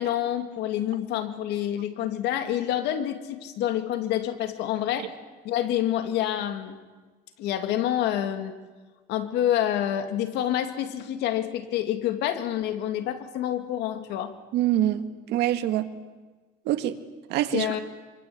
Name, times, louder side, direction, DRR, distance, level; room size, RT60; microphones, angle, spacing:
voice 1, 0.0-5.1 5.4-6.8 7.4-8.5 9.1-14.3 17.5-17.8, left 11 dB, 85° left, 8 dB, 2.7 m, -27 dB
voice 2, 14.5-15.9 16.7-17.0 17.3-17.8, right 12 dB, 85° right, 9 dB, 1.9 m, -25 dB
25.5 x 25.5 x 8.8 m, 1.3 s
cardioid pair, 110°, 17 cm